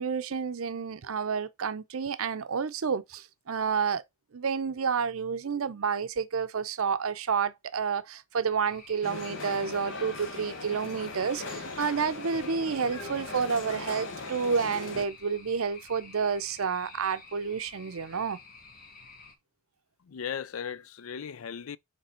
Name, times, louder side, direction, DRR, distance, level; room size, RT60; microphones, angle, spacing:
voice 1, 0.0-4.0 4.3-18.4, right 6 dB, 75° right, 0.6 m, -30 dB
sound 1, 8.6-19.4, left 4 dB, 40° left, 1.2 m, -51 dB
sound 2, 9.0-15.1, left 3 dB, 60° left, 0.9 m, -39 dB
voice 2, 20.0-21.8, left 7 dB, 75° left, 0.4 m, -37 dB
6.7 x 3.3 x 4.3 m
head